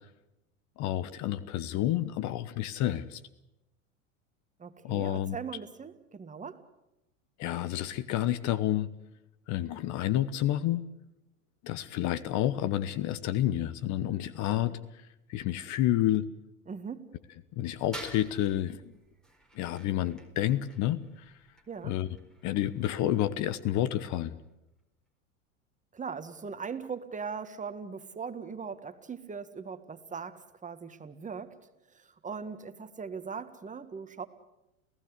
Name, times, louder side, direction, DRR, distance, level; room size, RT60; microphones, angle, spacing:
voice 1, 0.8-3.2 4.8-5.4 7.4-8.9 9.5-10.9 11.6-14.8 15.3-16.3 17.6-18.9 19.5-21.0 21.8-22.1 22.4-24.3, left 13 dB, 45° left, 17 dB, 1.2 m, -29 dB
voice 2, 4.6-6.6 16.7-17.1 21.7-22.0 25.9-31.5 31.9-34.3, right 6 dB, 20° right, 10 dB, 1.8 m, -40 dB
sound 1, 17.8-24.5, right 1 dB, ahead, 3.9 m, -51 dB
30.0 x 16.5 x 8.3 m, 0.92 s
hypercardioid pair, 95°, 41 cm